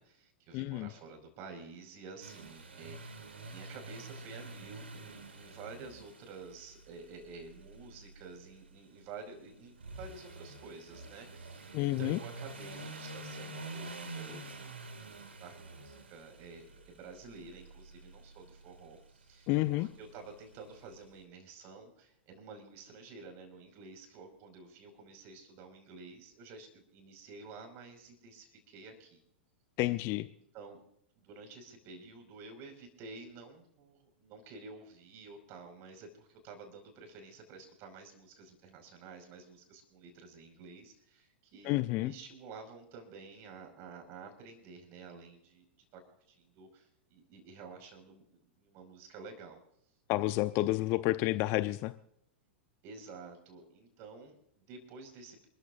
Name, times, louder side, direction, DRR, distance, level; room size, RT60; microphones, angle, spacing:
voice 1, 0.0-14.5 15.0-29.2 30.3-30.8 31.2-45.7 45.9-46.0 46.3-49.6 52.8-55.5, right 4 dB, 40° right, 5 dB, 5.3 m, -51 dB
voice 2, 0.5-0.9 11.7-12.2 19.5-19.9 29.8-30.3 41.6-42.1 50.1-51.9, left 18 dB, 40° left, 12 dB, 0.7 m, -30 dB
sound 1, 2.2-21.1, right 2 dB, 75° right, 2.4 m, -48 dB
27.5 x 14.5 x 2.6 m, 0.72 s
figure-of-eight pair, 100°, 6 cm